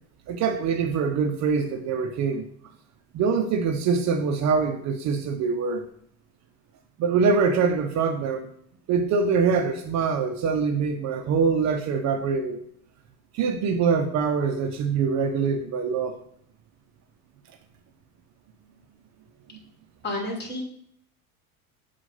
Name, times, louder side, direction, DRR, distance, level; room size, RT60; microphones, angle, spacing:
voice 1, 0.3-2.5 3.1-5.9 7.0-8.5 8.9-12.6 13.3-16.1, right 5 dB, 40° right, 0.6 m, -24 dB
voice 2, 20.0-20.6, left 1 dB, 25° left, 2.1 m, -30 dB
6.9 x 2.5 x 5.5 m
hypercardioid pair, 70°, 42 cm